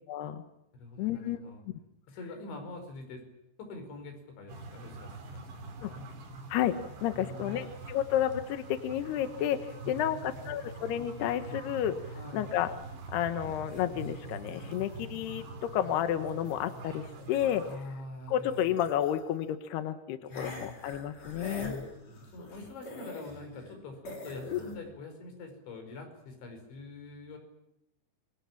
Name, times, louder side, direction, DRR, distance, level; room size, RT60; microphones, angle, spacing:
voice 1, 0.1-0.4 1.0-1.4 5.8-5.9 6.5-12.0 12.3-12.7 13.1-17.6 18.3-21.7 24.5-24.6, left 11 dB, 75° left, 10 dB, 3.0 m, -31 dB
voice 2, 0.7-1.6 2.1-3.2 3.6-6.1 7.1-7.6 9.8-10.7 12.2-12.5 17.6-18.7 20.3-20.8 21.6-21.9 22.2-27.4, left 2 dB, 90° left, 6 dB, 7.5 m, -45 dB
sound 1, 4.5-17.8, right 3 dB, 75° right, 6.0 m, -45 dB
sound 2, 13.7-17.9 18.2-19.5 20.3-23.8 24.0-24.8, left 1 dB, 40° left, 7.1 m, -46 dB
28.0 x 23.5 x 7.4 m, 0.82 s
omnidirectional pair, 5.1 m